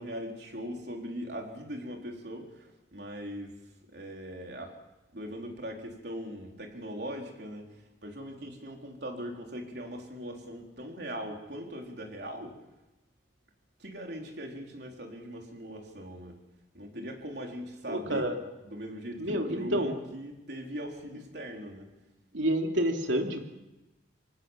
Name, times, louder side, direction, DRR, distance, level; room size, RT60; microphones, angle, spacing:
voice 1, 0.0-3.6 3.9-4.8 5.1-7.7 8.0-12.6 13.8-16.4 16.7-18.2 18.6-21.9, equal, 60° right, 1 dB, 4.3 m, -40 dB
voice 2, 17.9-18.4 19.2-20.0 22.3-23.5, right 1 dB, 85° right, 3 dB, 3.0 m, -29 dB
25.0 x 18.5 x 7.5 m, 1.0 s
head